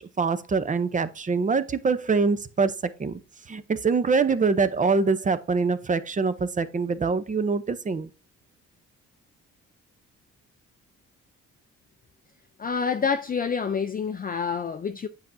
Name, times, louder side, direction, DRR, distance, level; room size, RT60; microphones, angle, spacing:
voice 1, 0.0-3.2 3.5-8.1, right 4 dB, 25° right, 0.7 m, -24 dB
voice 2, 12.6-15.1, left 6 dB, 30° left, 0.5 m, -27 dB
8.3 x 5.6 x 2.6 m
cardioid pair, 90°, 30 cm